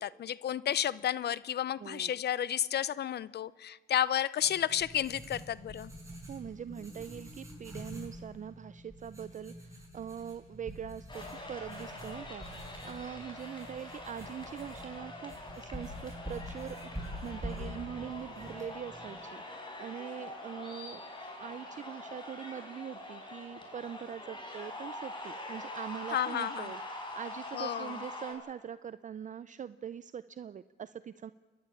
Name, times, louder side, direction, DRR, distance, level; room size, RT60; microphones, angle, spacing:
voice 1, 0.0-5.9 26.1-26.7 27.5-28.0, left 10 dB, 55° left, 0.7 m, -32 dB
voice 2, 1.8-2.2 6.3-21.0 21.4-31.3, right 8 dB, 40° right, 0.5 m, -43 dB
Writing, 4.4-19.2, equal, 15° right, 6.9 m, -46 dB
sound 1, 11.1-28.3, left 1 dB, 25° left, 5.3 m, -44 dB
29.0 x 11.5 x 8.8 m
cardioid pair, 90°, 20 cm